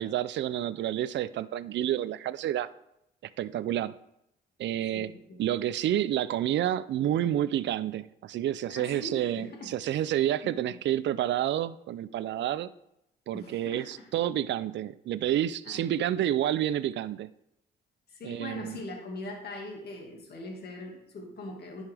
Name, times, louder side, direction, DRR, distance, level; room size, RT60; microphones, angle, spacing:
voice 1, 0.0-2.7 3.4-3.9 4.6-5.1 5.4-12.7 13.3-17.3 18.2-18.8, right 11 dB, 65° right, 16 dB, 0.5 m, -29 dB
voice 2, 4.9-5.6 8.7-10.1 10.4-10.6 13.3-14.1 15.7-15.9 18.1-21.8, left 2 dB, 55° left, 0 dB, 2.0 m, -42 dB
10.5 x 5.5 x 3.4 m, 0.80 s
cardioid pair, 90°, 20 cm